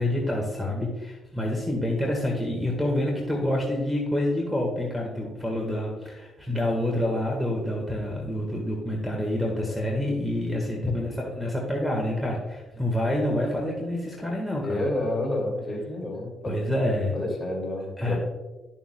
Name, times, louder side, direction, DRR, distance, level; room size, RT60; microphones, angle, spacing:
voice 1, 0.0-14.8 16.5-17.1 18.0-18.2, left 1 dB, ahead, -1 dB, 1.5 m, -27 dB
voice 2, 14.6-16.6 17.1-18.2, left 1 dB, 25° left, 0 dB, 2.5 m, -29 dB
11.5 x 7.1 x 2.2 m, 1.1 s
cardioid pair, 90°, 0 cm